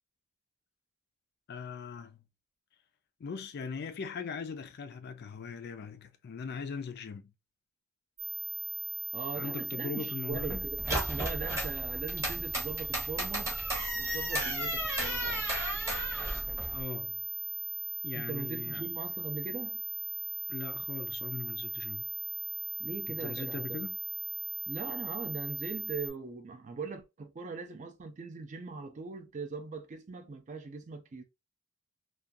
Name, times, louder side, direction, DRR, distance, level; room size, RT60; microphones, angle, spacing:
voice 1, 1.5-2.2 3.2-7.3 9.3-10.7 16.7-17.3 18.0-18.8 20.5-22.1 23.1-24.0, left 5 dB, 45° left, 0.3 m, -40 dB
sound 1, 8.2-26.1, right 6 dB, 60° right, 0.8 m, -38 dB
voice 2, 9.1-13.6 13.9-15.3 18.1-19.8 22.8-23.8 24.7-31.2, right 4 dB, 35° right, 0.4 m, -40 dB
sound 2, 10.3-16.8, equal, 15° right, 0.9 m, -35 dB
2.4 x 2.2 x 2.5 m
head